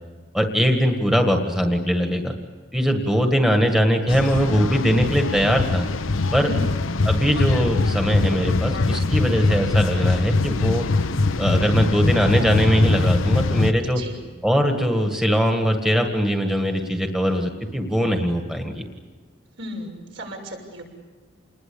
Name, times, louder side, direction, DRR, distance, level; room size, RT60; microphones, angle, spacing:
voice 1, 0.3-2.3 2.7-5.9 6.3-6.5 7.0-10.9 11.4-14.0 14.4-18.9, equal, 5° right, 4 dB, 1.8 m, -21 dB
sound 1, 4.1-13.7, left 3 dB, 80° left, 1.0 m, -22 dB
voice 2, 6.4-6.7 13.9-14.2 19.6-20.8, equal, 70° right, 1 dB, 6.7 m, -35 dB
28.5 x 20.5 x 8.6 m, 1.5 s
head